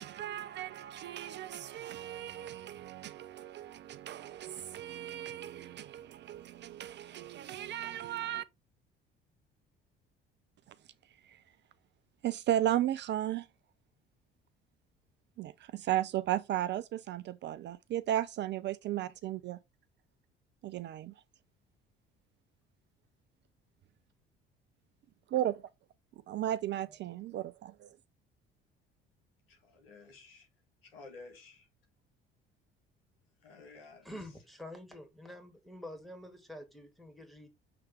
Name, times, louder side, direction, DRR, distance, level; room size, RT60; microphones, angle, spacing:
voice 1, 0.0-8.4 11.2-11.4 12.2-13.5 15.4-19.6 20.6-21.1 25.3-25.6 26.3-28.0, right 12 dB, 40° right, 0.4 m, -35 dB
voice 2, 29.5-30.4 30.9-31.6 33.4-34.1, left 3 dB, 80° left, 1.6 m, -52 dB
voice 3, 34.0-37.5, left 1 dB, ahead, 2.0 m, -47 dB
6.8 x 3.2 x 4.4 m
figure-of-eight pair, 50°, 29 cm